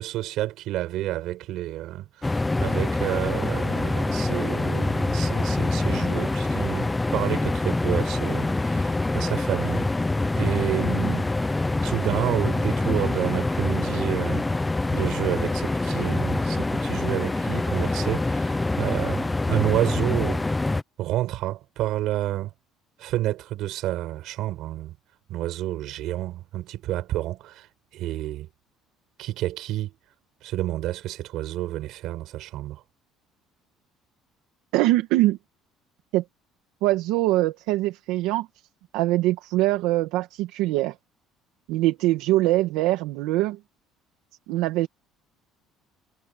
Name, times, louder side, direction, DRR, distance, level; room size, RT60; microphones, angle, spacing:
voice 1, 0.0-9.9 10.3-11.3 11.8-14.5 14.9-20.4 21.0-22.5 23.0-24.9 25.3-27.7 27.9-28.5 29.2-29.9 30.4-32.8, right 15 dB, 55° right, 8.0 m, -29 dB
sound 1, 2.2-20.8, left 2 dB, 10° left, 0.6 m, -25 dB
voice 2, 34.7-35.4 36.1-36.2 36.8-38.5 38.9-40.9 41.7-43.6 44.5-44.9, right 17 dB, 80° right, 2.2 m, -23 dB
cardioid pair, 175°, 0 cm